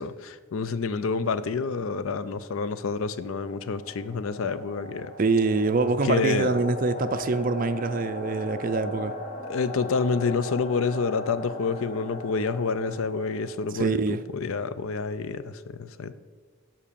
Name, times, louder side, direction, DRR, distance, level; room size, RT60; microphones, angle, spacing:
voice 1, 0.0-5.1 6.0-6.5 9.4-16.1, left 4 dB, 70° left, 0.5 m, -28 dB
sound 1, 3.1-13.9, left 2 dB, 35° left, 1.3 m, -38 dB
voice 2, 5.2-9.2 13.7-14.2, right 3 dB, 40° right, 0.4 m, -25 dB
7.5 x 5.7 x 6.8 m
head